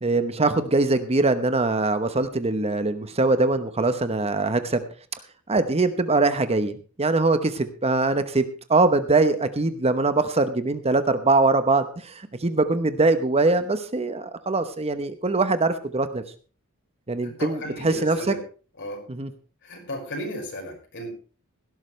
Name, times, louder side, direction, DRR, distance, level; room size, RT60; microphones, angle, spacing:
voice 1, 0.0-4.8 5.5-8.4 8.7-16.2 17.1-18.3 19.1-19.3, right 3 dB, 30° right, 10 dB, 0.9 m, -22 dB
voice 2, 17.2-18.4 18.8-19.0 19.6-21.1, equal, 55° left, 1 dB, 5.4 m, -35 dB
17.0 x 12.5 x 3.2 m, 0.37 s
head